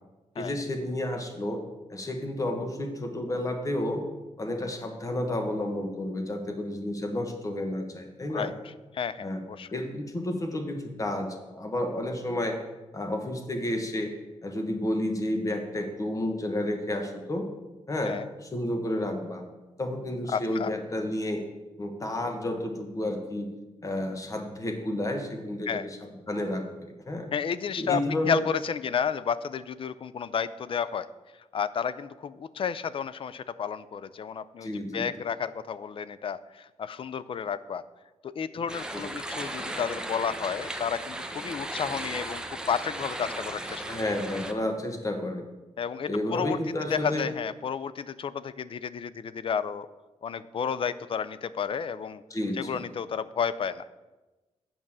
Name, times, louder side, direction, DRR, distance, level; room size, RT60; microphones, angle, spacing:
voice 1, 0.3-1.6 1.9-4.0 4.4-8.5 9.2-9.4 9.7-12.6 12.9-14.1 14.4-17.5 17.9-19.4 19.8-21.4 21.8-23.5 23.8-25.8 26.3-27.3 27.8-28.4 34.6-35.1 38.9-39.0 43.8-45.4 46.1-47.3 52.3-52.8, left 1 dB, 30° left, 4 dB, 1.4 m, -31 dB
voice 2, 8.9-9.7 18.0-18.3 20.3-20.7 25.7-25.8 27.3-31.1 31.5-37.8 38.2-43.8 45.8-46.6 46.9-49.9 50.2-52.2 52.5-53.8, left 7 dB, 50° left, 16 dB, 0.4 m, -31 dB
sound 1, 38.7-44.5, right 1 dB, 5° right, 0.8 m, -36 dB
8.8 x 5.3 x 7.4 m, 1.1 s
wide cardioid pair, 125°, 12 cm